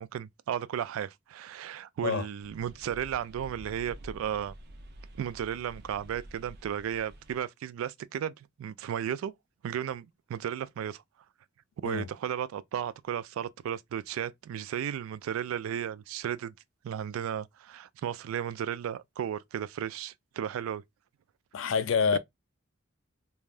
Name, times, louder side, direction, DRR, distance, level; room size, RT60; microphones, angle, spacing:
voice 1, 0.0-4.5 5.1-8.3 8.6-9.3 9.6-11.0 11.8-16.5 16.8-20.8 22.1-22.2, right 9 dB, 90° right, 0.3 m, -34 dB
sound 1, 2.4-7.4, right 1 dB, 50° right, 0.6 m, -49 dB
voice 2, 21.5-22.2, left 6 dB, 65° left, 0.4 m, -27 dB
3.3 x 2.2 x 2.4 m
head